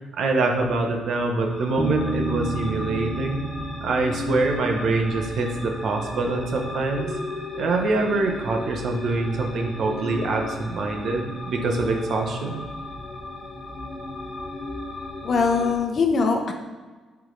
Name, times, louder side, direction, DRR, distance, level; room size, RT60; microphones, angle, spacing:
voice 1, 0.1-3.4 3.8-7.1 7.5-12.6, right 3 dB, 65° right, 2 dB, 1.0 m, -25 dB
sound 1, 1.4-15.7, left 2 dB, 15° left, 1.5 m, -35 dB
Bass guitar, 1.8-5.3, right 2 dB, 10° right, 0.8 m, -31 dB
voice 2, 15.2-16.5, left 4 dB, 50° left, 4 dB, 0.8 m, -21 dB
10.0 x 3.6 x 3.2 m, 1.4 s
cardioid pair, 90°, 0 cm